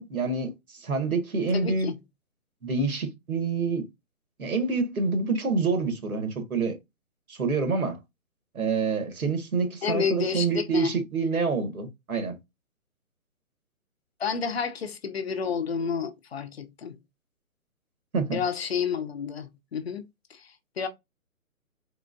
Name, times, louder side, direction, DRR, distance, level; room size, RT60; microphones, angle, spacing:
voice 1, 0.0-1.9 2.6-3.8 4.4-6.8 7.3-8.0 8.5-12.4 18.1-18.4, right 4 dB, 90° right, 1.7 m, -27 dB
voice 2, 1.5-2.0 9.8-10.9 14.2-17.0 18.3-20.9, left 6 dB, 45° left, 0.7 m, -30 dB
3.7 x 3.3 x 2.5 m
hypercardioid pair, 155°, 42 cm